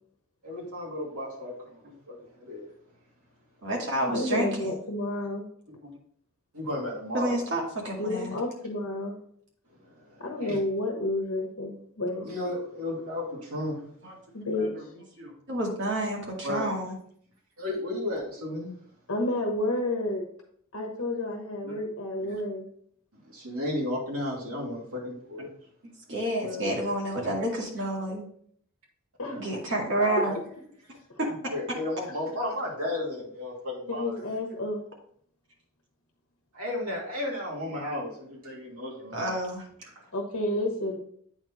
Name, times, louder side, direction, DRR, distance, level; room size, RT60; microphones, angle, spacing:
voice 1, 0.4-2.7 6.5-7.5 9.8-10.6 12.2-13.8 16.4-16.7 17.6-18.7 22.3-22.4 23.1-25.5 29.3-29.5 29.9-30.3 31.3-34.3 36.5-39.3 39.8-40.1, left 1 dB, 85° right, -3 dB, 2.7 m, -34 dB
voice 2, 3.6-4.7 5.7-5.9 7.1-8.3 14.0-14.1 15.2-16.9 21.7-21.8 26.1-28.2 29.4-30.4 39.1-39.6, right 1 dB, 55° right, -2 dB, 2.2 m, -29 dB
voice 3, 4.1-5.4 8.0-9.1 10.2-12.3 14.3-14.7 19.1-20.2 20.7-22.7 26.4-26.7 29.2-29.4 33.9-34.8 40.1-41.0, left 1 dB, 65° left, 1 dB, 1.2 m, -30 dB
8.7 x 4.5 x 4.0 m, 0.62 s
head